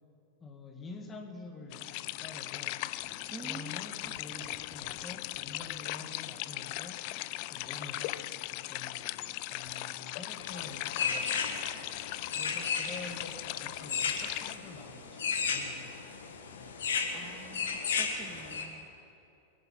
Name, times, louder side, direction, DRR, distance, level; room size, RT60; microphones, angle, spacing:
voice 1, 0.4-2.9 3.4-7.1 7.5-8.1 8.5-11.6 12.3-16.2, left 3 dB, 20° left, 4 dB, 1.8 m, -48 dB
sound 1, 1.7-14.5, left 18 dB, 45° left, 0.4 m, -39 dB
voice 2, 3.3-3.8 4.0-4.1 17.1-18.9, right 4 dB, 15° right, 8 dB, 0.5 m, -48 dB
sound 2, 10.4-18.6, left 5 dB, 65° left, 1.5 m, -35 dB
22.0 x 11.0 x 5.6 m, 2.8 s
figure-of-eight pair, 90°, 0 cm